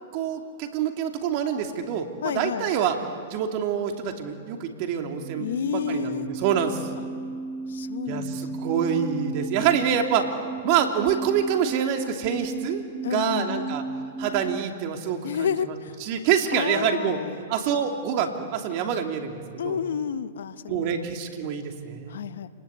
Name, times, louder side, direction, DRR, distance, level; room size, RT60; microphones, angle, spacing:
voice 1, 0.1-3.0 3.3-6.8 8.1-10.3 10.6-12.8 13.1-13.8 14.2-15.5 16.0-17.2 17.5-19.3 19.6-19.8 20.7-22.3, right 8 dB, 50° right, 4 dB, 2.9 m, -26 dB
voice 2, 2.2-2.7 5.4-6.3 7.0-7.1 7.7-9.2 13.0-13.8 15.2-16.0 16.5-17.4 19.6-21.1 22.1-22.5, left 8 dB, 75° left, 13 dB, 1.1 m, -31 dB
sound 1, 5.0-14.7, right 3 dB, 10° right, 0.8 m, -35 dB
28.5 x 20.0 x 8.3 m, 2.3 s
hypercardioid pair, 120°, 0 cm